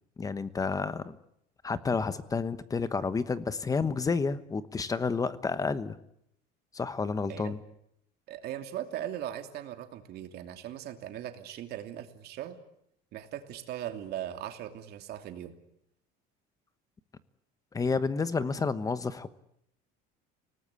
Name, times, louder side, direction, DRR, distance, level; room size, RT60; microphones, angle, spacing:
voice 1, 0.2-1.2 1.6-6.0 6.7-7.6 17.7-19.3, left 4 dB, 15° left, 14 dB, 1.1 m, -30 dB
voice 2, 8.3-12.6 13.1-15.5, right 11 dB, 50° right, 6 dB, 2.8 m, -39 dB
30.0 x 19.0 x 8.4 m, 0.76 s
cardioid pair, 155°, 21 cm